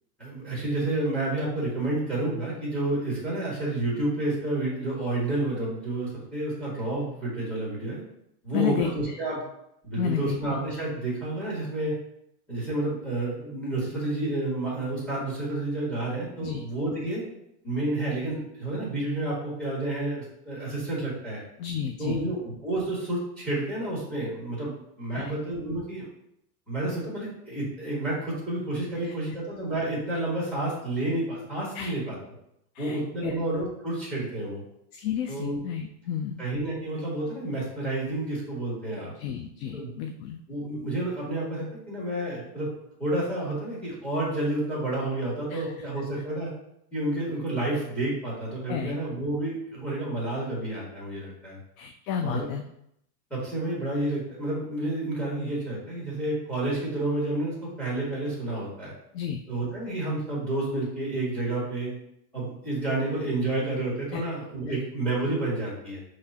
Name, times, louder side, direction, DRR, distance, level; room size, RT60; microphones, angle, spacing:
voice 1, 0.2-8.0 8.4-9.4 9.8-11.9 12.5-17.2 17.6-21.4 22.0-26.1 26.7-32.2 32.8-34.6 35.3-35.6 36.4-39.1 39.7-39.9 40.5-42.7 43.0-46.5 46.9-51.6 52.2-52.5 53.3-58.9 59.5-61.9 62.3-66.0, right 2 dB, ahead, -5 dB, 1.8 m, -30 dB
voice 2, 8.5-9.2 10.0-10.4 16.4-16.6 21.6-22.3 25.1-25.4 29.0-29.1 31.7-32.0 32.7-33.4 34.9-36.4 39.2-40.4 45.5-45.7 48.7-49.0 51.8-52.6 59.1-59.4 64.1-64.2, left 8 dB, 60° left, 6 dB, 0.5 m, -31 dB
5.9 x 3.2 x 2.8 m, 0.77 s
supercardioid pair, 150°, 49 cm